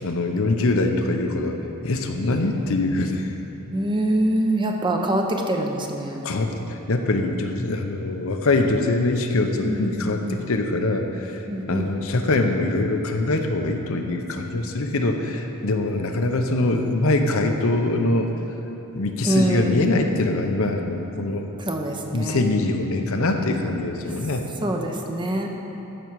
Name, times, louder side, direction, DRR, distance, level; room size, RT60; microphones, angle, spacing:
voice 1, 0.0-1.6 1.8-3.3 6.2-11.4 11.7-18.3 18.9-21.5 22.1-24.5, left 2 dB, 70° left, 4 dB, 0.8 m, -23 dB
voice 2, 3.5-6.2 9.6-10.4 11.5-11.9 19.2-19.9 21.7-22.4 24.6-25.5, right 1 dB, 20° right, 2 dB, 0.8 m, -25 dB
14.0 x 6.2 x 4.7 m, 3.0 s
head